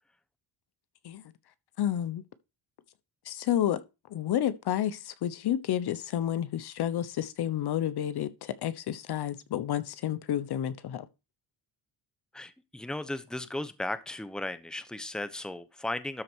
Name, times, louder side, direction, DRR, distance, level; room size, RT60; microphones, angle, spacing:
voice 1, 1.8-2.2 3.3-3.8 4.1-11.1, left 11 dB, 65° left, 1.1 m, -30 dB
voice 2, 12.3-16.2, left 1 dB, ahead, 1.0 m, -36 dB
12.5 x 4.4 x 6.3 m
cardioid pair, 95°, 42 cm